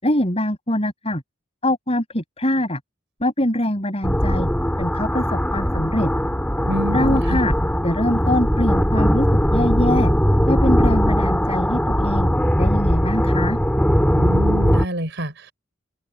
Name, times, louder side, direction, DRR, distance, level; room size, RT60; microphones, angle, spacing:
voice 1, 0.0-1.2 1.6-2.8 3.2-4.5 4.8-6.1 6.9-7.5 7.8-10.1 10.5-12.3 12.6-13.6, left 1 dB, 30° left, 7.2 m, -23 dB
sound 1, 4.0-14.8, equal, 5° left, 3.3 m, -19 dB
voice 2, 6.6-7.4 14.1-15.5, equal, 65° right, 6.6 m, -27 dB
open air
head